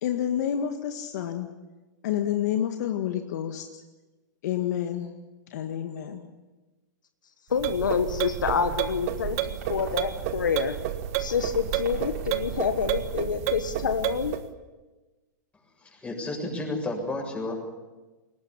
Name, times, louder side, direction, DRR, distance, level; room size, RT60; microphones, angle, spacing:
voice 1, 0.0-1.5 2.0-3.7 4.4-5.1 5.5-6.2, left 10 dB, 60° left, 6 dB, 1.8 m, -29 dB
voice 2, 7.5-10.8 11.2-14.4, left 6 dB, 85° left, 9 dB, 1.5 m, -27 dB
sound 1, 7.5-14.5, right 12 dB, 50° right, 1.6 m, -31 dB
sound 2, 7.8-13.1, right 5 dB, 70° right, 6.2 m, -46 dB
voice 3, 15.8-17.6, left 2 dB, 10° left, 1 dB, 7.3 m, -32 dB
22.0 x 19.5 x 8.6 m, 1.2 s
hypercardioid pair, 115°, 10 cm